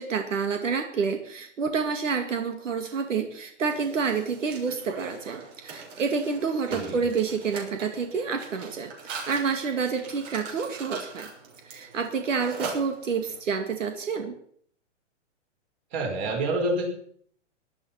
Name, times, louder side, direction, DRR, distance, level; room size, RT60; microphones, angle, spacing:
voice 1, 0.0-11.3 11.6-14.4, right 5 dB, 85° right, 6 dB, 2.3 m, -28 dB
Mechanisms, 3.6-13.4, right 4 dB, 55° right, 6.4 m, -41 dB
voice 2, 6.7-7.0 15.9-16.8, right 2 dB, 35° right, 2 dB, 5.2 m, -27 dB
18.5 x 11.5 x 5.7 m, 0.62 s
hypercardioid pair, 150°, 37 cm